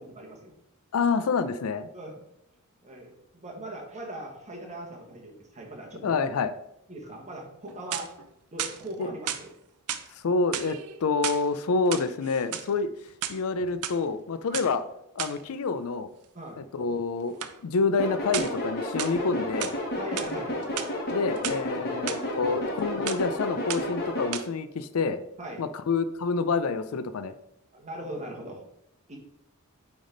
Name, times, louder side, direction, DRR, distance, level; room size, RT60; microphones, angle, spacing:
voice 1, 0.1-0.5 1.9-2.1 2.8-3.1 3.4-6.2 6.9-8.1 8.5-9.5 14.5-14.6 16.3-16.6 20.0-20.7 21.8-21.9 22.4-22.5 25.4-25.6 27.7-28.6 29.1-29.2, right 1 dB, 30° right, 0 dB, 1.4 m, -40 dB
voice 2, 0.9-1.9 6.0-6.5 9.0-9.1 10.1-12.9 13.3-14.8 15.2-16.1 16.6-19.7 21.1-25.2 25.6-27.3, left 4 dB, 70° left, 12 dB, 0.4 m, -27 dB
sound 1, 7.6-8.3 8.6-9.4 9.9-10.1 10.5-11.4 11.8-12.7 13.1-13.9 14.5-14.7 15.2-15.4 17.4-17.6 18.3-18.6 19.0-19.8 20.2-20.3 20.6-21.6 22.1-22.2 22.6-22.8 23.1-23.3 23.7-24.0 24.3-24.4, right 9 dB, 85° right, 0.5 m, -34 dB
sound 2, 18.0-24.3, left 1 dB, 45° left, 1.4 m, -31 dB
8.8 x 3.5 x 3.8 m, 0.80 s
head